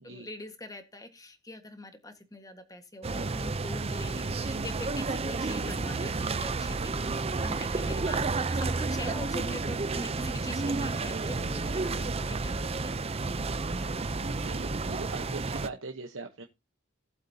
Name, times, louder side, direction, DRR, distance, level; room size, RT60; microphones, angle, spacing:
voice 1, 0.0-13.0, left 1 dB, 15° left, 8 dB, 1.6 m, -43 dB
sound 1, 3.0-15.7, right 3 dB, 30° right, 0.6 m, -31 dB
voice 2, 14.2-16.4, right 3 dB, 65° right, 4 dB, 1.1 m, -41 dB
18.5 x 7.9 x 2.8 m, 0.25 s
head